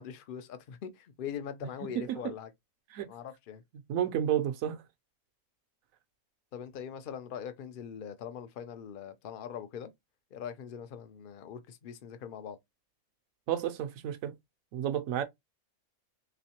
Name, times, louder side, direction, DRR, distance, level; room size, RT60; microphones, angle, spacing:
voice 1, 0.0-2.5 3.1-3.6 6.5-9.9 10.3-12.6, left 8 dB, 55° left, 0.6 m, -42 dB
voice 2, 3.9-4.8 13.5-14.3 14.7-15.2, right 10 dB, 70° right, 1.0 m, -31 dB
3.5 x 3.1 x 2.9 m
omnidirectional pair, 1.5 m